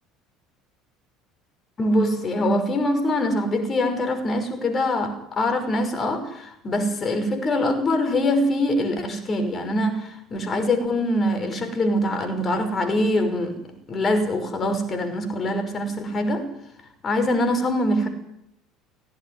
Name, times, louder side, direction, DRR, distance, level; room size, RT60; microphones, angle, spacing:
voice 1, 1.8-13.6 13.9-16.5 17.0-18.1, left 1 dB, 30° left, 7 dB, 5.7 m, -23 dB
17.5 x 17.0 x 9.9 m, 0.79 s
figure-of-eight pair, 65°, 0 cm